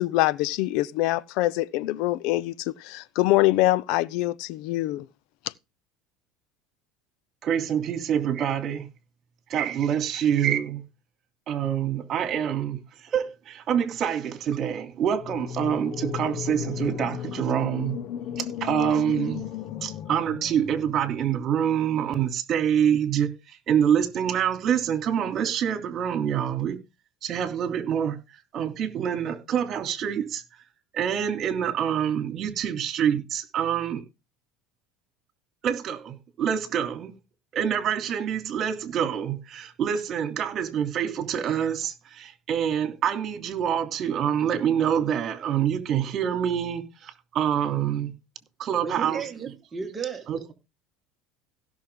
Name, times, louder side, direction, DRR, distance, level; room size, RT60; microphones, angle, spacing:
voice 1, 0.0-5.1, left 17 dB, 65° left, 0.7 m, -24 dB
voice 2, 7.4-8.9 9.5-10.8 11.5-12.8 13.1-18.0 18.4-19.4 19.8-26.8 27.2-28.2 28.5-30.4 30.9-34.0 35.6-37.1 37.5-48.1 48.6-49.2 50.3-50.4, right 9 dB, 40° right, 3.0 m, -26 dB
sound 1, 15.1-21.3, left 10 dB, 50° left, 1.0 m, -35 dB
voice 3, 48.8-50.5, right 6 dB, 20° right, 2.0 m, -34 dB
17.0 x 6.4 x 3.7 m
supercardioid pair, 120°, 0 cm